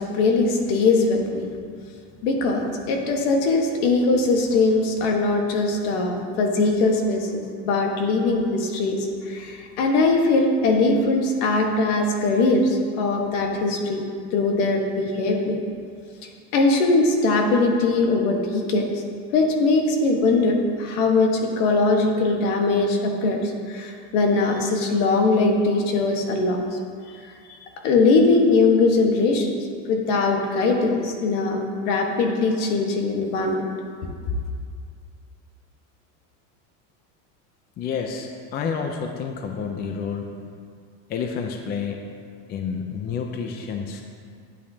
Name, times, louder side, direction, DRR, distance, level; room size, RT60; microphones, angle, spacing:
voice 1, 0.0-1.4 2.2-14.0 14.3-15.6 16.5-18.9 19.3-26.6 27.1-27.2 27.5-27.6 27.8-29.5 29.9-31.6 31.9-33.6 34.0-34.1, left 3 dB, 65° left, 2 dB, 1.4 m, -21 dB
voice 2, 37.8-40.3 41.1-42.0 42.5-44.0, left 6 dB, 25° left, 4 dB, 0.5 m, -29 dB
11.5 x 8.7 x 2.8 m, 2.2 s
supercardioid pair, 145°, 40 cm